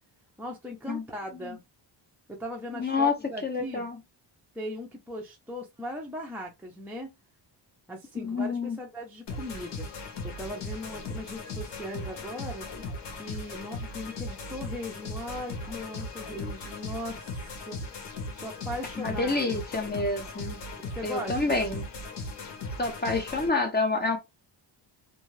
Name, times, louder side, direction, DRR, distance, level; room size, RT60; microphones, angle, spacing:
voice 1, 0.4-1.6 2.3-3.9 4.5-7.1 7.9-9.9 10.2-12.7 13.1-17.8 18.3-19.6 21.0-21.9, left 1 dB, 5° right, 0.5 m, -38 dB
voice 2, 2.7-3.1 3.4-4.0 8.1-8.8 19.0-20.6 21.0-21.9 22.8-24.2, left 3 dB, 20° left, 0.8 m, -28 dB
sound 1, 9.3-23.5, left 2 dB, 70° left, 1.0 m, -38 dB
2.6 x 2.3 x 3.2 m
wide cardioid pair, 140°, 44 cm